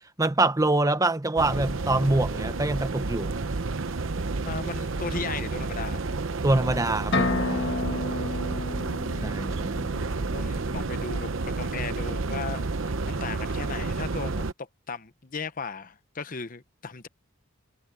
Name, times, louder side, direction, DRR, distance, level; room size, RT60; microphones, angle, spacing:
voice 1, 0.2-3.3 6.4-7.7 9.2-9.9, right 2 dB, 15° right, 0.8 m, -25 dB
sound 1, 1.4-14.5, right 3 dB, 70° right, 0.9 m, -30 dB
sound 2, 1.7-7.9, right 7 dB, 45° right, 6.2 m, -57 dB
voice 2, 4.4-6.0 8.3-8.8 10.1-17.1, left 4 dB, 40° left, 0.9 m, -37 dB
sound 3, 7.1-10.9, left 2 dB, 60° left, 1.6 m, -31 dB
head